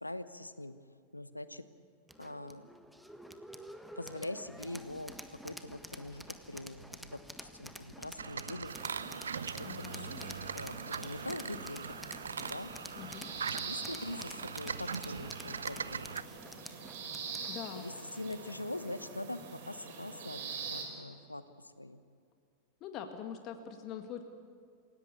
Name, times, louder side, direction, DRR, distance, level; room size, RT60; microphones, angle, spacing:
voice 1, 0.0-0.8 1.1-1.6 2.2-2.7 4.0-8.7 9.4-11.9 12.4-12.7 13.5-16.1 17.7-22.0, left 1 dB, 85° left, 13 dB, 1.0 m, -43 dB
sound 1, 2.1-18.6, equal, ahead, 1.4 m, -50 dB
sound 2, 8.2-16.2, right 6 dB, 70° right, 0.6 m, -41 dB
sound 3, 8.7-20.8, right 5 dB, 55° right, 4.5 m, -45 dB
voice 2, 9.6-10.5 13.0-13.3 17.5-17.9 22.8-24.2, left 8 dB, 35° left, 6 dB, 1.9 m, -44 dB
28.0 x 17.5 x 8.4 m, 2.3 s
figure-of-eight pair, 90°, 0 cm